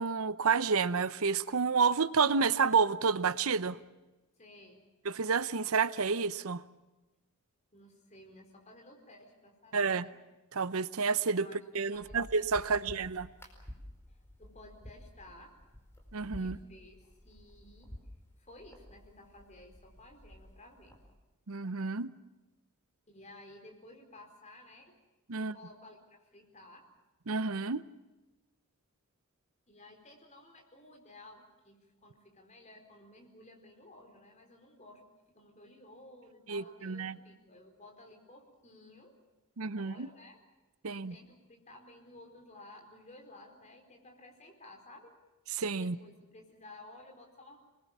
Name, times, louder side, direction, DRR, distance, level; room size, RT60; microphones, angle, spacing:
voice 1, 0.0-3.8 5.0-6.6 9.7-10.1 10.5-11.5 11.7-13.3 16.1-16.6 21.5-22.1 25.3-25.5 27.3-27.8 36.5-37.2 39.6-40.1 40.8-41.1 45.6-46.0, right 5 dB, 70° right, 15 dB, 0.8 m, -30 dB
voice 2, 4.4-4.9 7.7-10.2 11.4-11.6 11.9-12.2 12.6-12.9 14.1-15.5 16.4-17.9 18.4-20.9 23.1-25.0 25.4-26.9 29.7-35.0 35.3-39.2 39.7-40.4 40.9-45.2 45.8-47.6, left 1 dB, 30° left, 3 dB, 4.6 m, -55 dB
sound 1, 11.9-21.1, equal, 10° left, 4.6 m, -52 dB
27.0 x 21.0 x 7.3 m, 1.1 s
head